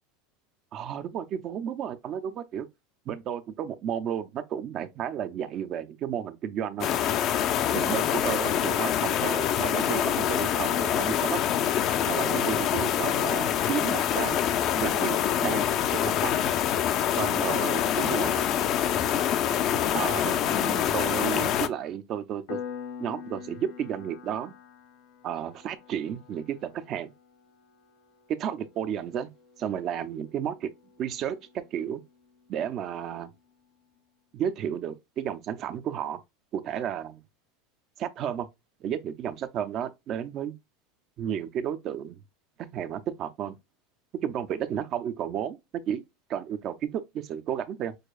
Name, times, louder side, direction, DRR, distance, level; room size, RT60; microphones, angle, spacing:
voice 1, 0.7-2.7 3.1-6.9 7.7-11.4 12.1-14.4 14.8-16.4 17.2-18.5 19.9-22.6 23.0-24.5 25.2-27.1 28.4-29.3 29.6-30.7 31.0-32.0 32.5-33.3 34.3-36.2 36.5-37.2 38.0-38.5 38.8-40.5 41.2-42.2 42.7-43.6 44.2-46.0 46.3-47.9, right 9 dB, 40° right, 0.5 m, -32 dB
sound 1, 6.8-21.7, left 10 dB, 40° left, 0.5 m, -25 dB
Piano, 22.5-32.9, left 7 dB, 75° left, 1.1 m, -46 dB
6.4 x 2.3 x 2.4 m
supercardioid pair, 140°, 0 cm